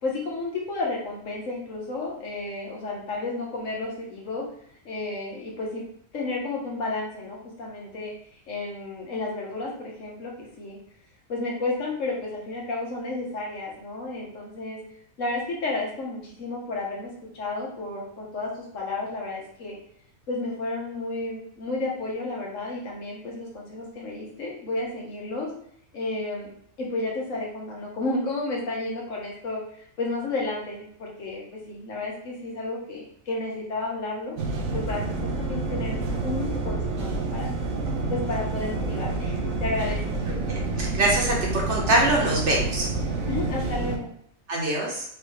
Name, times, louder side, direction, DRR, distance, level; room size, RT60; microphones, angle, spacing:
voice 1, 0.0-4.4 4.8-5.8 6.1-8.1 8.5-10.8 11.3-14.8 15.2-19.7 20.3-25.5 25.9-26.5 26.8-34.4 34.7-37.5 38.1-40.2 43.3-44.1, left 2 dB, 70° left, -2 dB, 1.4 m, -32 dB
sound 1, 34.4-44.0, right 3 dB, 85° right, 1.1 m, -28 dB
voice 2, 40.5-42.9 44.5-45.0, right 1 dB, 60° right, -3 dB, 1.4 m, -24 dB
4.7 x 2.7 x 3.2 m, 0.67 s
omnidirectional pair, 1.4 m